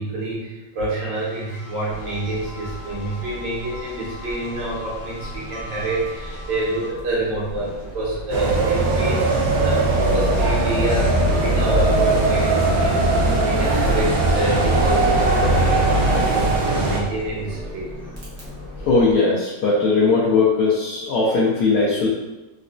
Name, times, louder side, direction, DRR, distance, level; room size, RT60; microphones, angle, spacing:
voice 1, 0.0-17.9, right 2 dB, 85° right, -5 dB, 1.7 m, -27 dB
sound 1, 1.1-6.9, left 3 dB, 55° left, 0.6 m, -40 dB
sound 2, 1.9-19.1, equal, 15° right, 0.5 m, -36 dB
sound 3, 8.3-17.0, right 2 dB, 65° right, 1.0 m, -19 dB
voice 2, 18.8-22.1, left 3 dB, 70° left, -7 dB, 1.1 m, -18 dB
4.0 x 2.2 x 2.5 m, 1.0 s
omnidirectional pair, 2.0 m